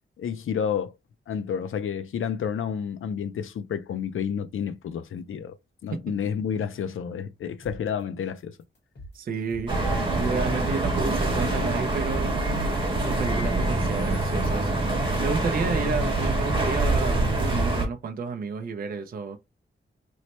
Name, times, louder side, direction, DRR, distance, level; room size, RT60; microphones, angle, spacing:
voice 1, 0.2-0.9 1.3-5.6 5.8-8.6, left 7 dB, 75° left, 0.4 m, -30 dB
sound 1, 7.6-7.8 8.2-8.4 8.7-9.9 10.2-10.3 10.6-10.8 11.2-11.4 11.7-12.1 12.5-12.6, equal, 55° left, 1.2 m, -43 dB
voice 2, 9.1-9.7 10.1-12.3 13.0-19.4, right 5 dB, 45° right, 0.4 m, -31 dB
sound 2, 9.7-17.9, right 2 dB, 25° right, 1.0 m, -25 dB
3.1 x 2.1 x 4.1 m
wide cardioid pair, 150°, 21 cm